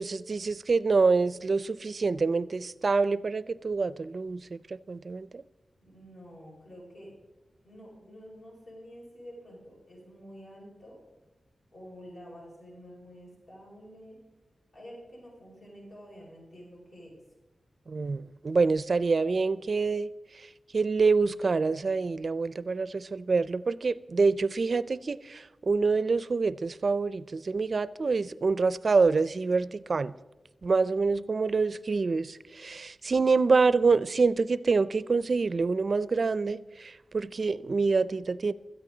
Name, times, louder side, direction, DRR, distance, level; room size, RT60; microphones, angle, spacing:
voice 1, 0.0-5.4 17.9-20.1 20.3-30.1 30.6-38.5, right 4 dB, 50° right, 0.4 m, -26 dB
voice 2, 5.8-7.1 7.6-11.0 11.7-14.2 14.7-17.2, equal, 50° left, 5.4 m, -48 dB
17.0 x 13.0 x 3.9 m
wide cardioid pair, 140°, 0 cm